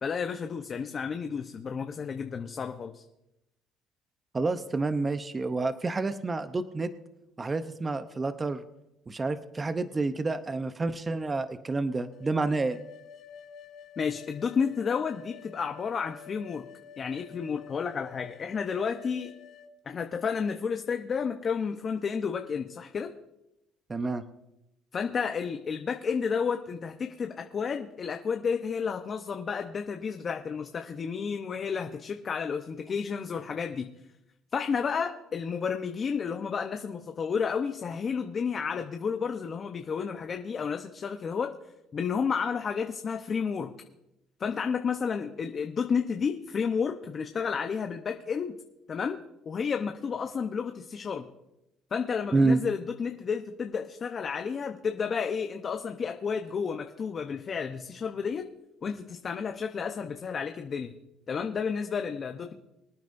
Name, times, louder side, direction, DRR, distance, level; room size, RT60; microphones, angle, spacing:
voice 1, 0.0-3.0 14.0-16.7 17.0-19.3 19.9-23.1 24.9-33.9 34.5-41.5 41.9-43.7 44.4-48.5 48.9-49.2 49.5-51.3 51.9-58.5 58.8-60.9 61.3-62.5, left 6 dB, 40° left, 5 dB, 0.9 m, -31 dB
voice 2, 4.3-6.9 7.4-8.6 9.1-12.8 23.9-24.2 52.3-52.6, right 3 dB, 25° right, 10 dB, 0.7 m, -28 dB
sound 1, 12.1-19.7, left 8 dB, 65° left, 1.7 m, -50 dB
24.5 x 9.2 x 2.6 m, 0.88 s
supercardioid pair, 90°, 0 cm